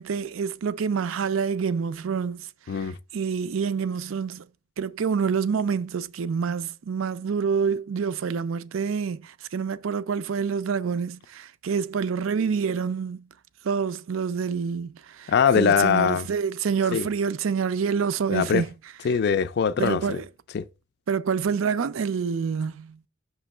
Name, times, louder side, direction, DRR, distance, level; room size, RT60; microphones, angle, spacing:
voice 1, 0.0-2.5 2.7-2.9 3.1-4.5 4.8-13.3 13.6-18.7 19.8-20.3 21.1-23.0, right 6 dB, 75° right, 0.4 m, -27 dB
voice 2, 15.3-16.3 16.9-17.1 18.3-18.6 19.0-20.2 20.5-20.7, left 6 dB, 55° left, 0.4 m, -22 dB
6.0 x 3.0 x 5.4 m
head